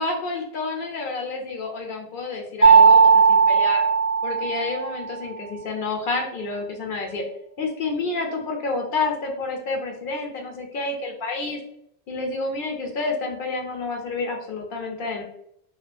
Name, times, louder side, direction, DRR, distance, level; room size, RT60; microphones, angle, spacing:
voice 1, 0.0-3.8 4.2-7.2 7.6-11.6 12.1-15.2, left 3 dB, 65° left, 1 dB, 0.7 m, -29 dB
Mallet percussion, 2.6-5.1, right 5 dB, 45° right, 0.6 m, -16 dB
2.8 x 2.2 x 2.4 m, 0.73 s
omnidirectional pair, 1.0 m